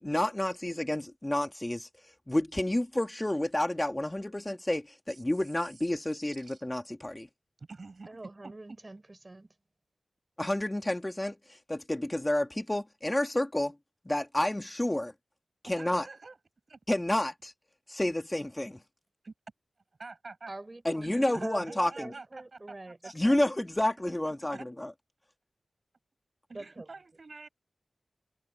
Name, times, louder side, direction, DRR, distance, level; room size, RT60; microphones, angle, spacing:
voice 1, 0.0-1.9 2.3-7.3 10.4-13.7 14.1-15.1 15.7-16.1 16.9-17.5 17.9-18.8 20.8-22.1 23.1-24.9, left 1 dB, 15° left, 2.2 m, -30 dB
voice 2, 6.3-6.6 7.6-8.5 15.7-16.4 16.7-16.8 19.2-19.3 20.0-20.5 21.0-23.1 24.5-24.7 26.5-27.5, right 3 dB, 55° right, 7.0 m, -47 dB
voice 3, 8.1-9.5 20.5-23.5 24.0-24.2 26.5-26.9, right 2 dB, 30° right, 4.5 m, -44 dB
wide cardioid pair, 70°, 0 cm